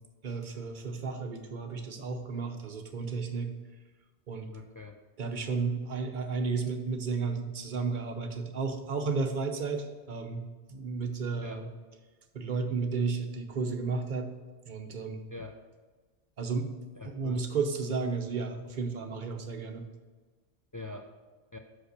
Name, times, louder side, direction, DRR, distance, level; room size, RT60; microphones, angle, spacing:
voice 1, 0.2-3.5 4.3-4.5 5.2-11.7 12.3-14.3 14.7-15.2 16.4-16.7 17.0-19.9, right 4 dB, 50° right, 5 dB, 0.9 m, -33 dB
voice 2, 4.5-5.0 11.4-11.6 15.3-15.6 17.0-17.4 20.7-21.1 21.5-21.6, left 3 dB, 30° left, 3 dB, 0.3 m, -43 dB
6.1 x 5.4 x 6.5 m, 1.4 s
omnidirectional pair, 1.1 m